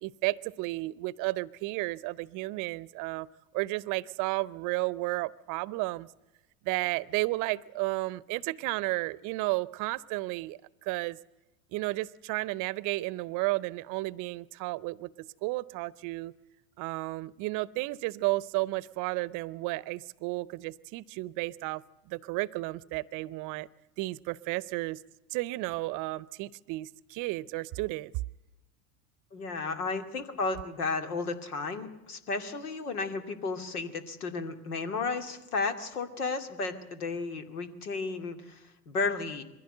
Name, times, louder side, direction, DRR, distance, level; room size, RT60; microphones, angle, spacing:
voice 1, 0.0-3.3 3.5-6.1 6.6-11.2 11.7-16.3 16.8-21.8 22.1-23.7 24.0-25.0 25.3-28.1, right 21 dB, 45° right, 22 dB, 0.7 m, -33 dB
voice 2, 29.3-39.4, left 4 dB, 85° left, 8 dB, 2.5 m, -33 dB
22.0 x 16.0 x 7.8 m, 1.0 s
hypercardioid pair, 100°, 44 cm